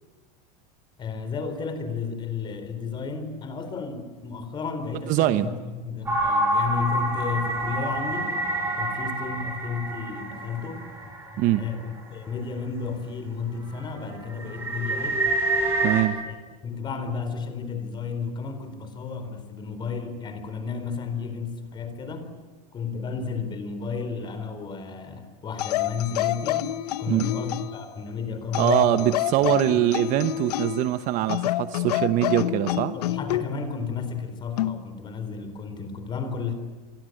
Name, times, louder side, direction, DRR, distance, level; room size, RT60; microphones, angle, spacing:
voice 1, 1.0-8.4 8.8-11.0 11.6-15.3 16.3-16.4 16.6-22.4 22.7-29.1 29.3-29.8 32.9-36.5, left 5 dB, 25° left, 9 dB, 4.1 m, -33 dB
voice 2, 5.1-5.5 11.4-11.6 15.8-16.2 27.1-27.3 28.5-32.9, right 13 dB, 40° right, 11 dB, 1.1 m, -23 dB
sound 1, 6.1-11.8 12.4-12.5 13.0-13.2 13.6-16.0, right 1 dB, 10° right, 7.3 m, -27 dB
sound 2, 25.6-27.8 28.5-30.9 31.3-33.5 34.6-34.8, left 14 dB, 85° left, 1.0 m, -28 dB
29.0 x 24.5 x 8.0 m, 1.4 s
supercardioid pair, 150°, 20 cm